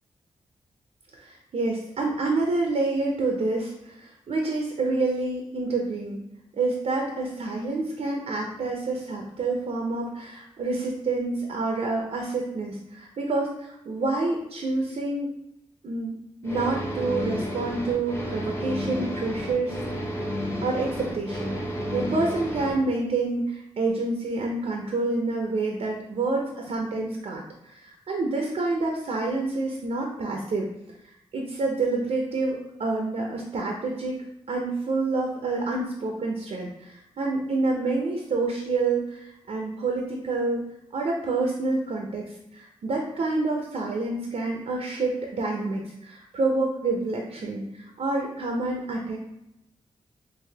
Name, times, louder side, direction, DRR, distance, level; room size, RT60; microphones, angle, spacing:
voice 1, 1.1-6.2 6.6-15.3 15.8-16.1 16.4-19.8 20.6-30.7 31.3-34.2 34.5-40.6 40.9-42.2 42.5-49.2, right 3 dB, 65° right, 0 dB, 0.5 m, -28 dB
sound 1, 16.4-22.8, equal, 20° left, 0.8 m, -31 dB
3.9 x 2.5 x 2.8 m, 0.86 s
cardioid pair, 45°, 12 cm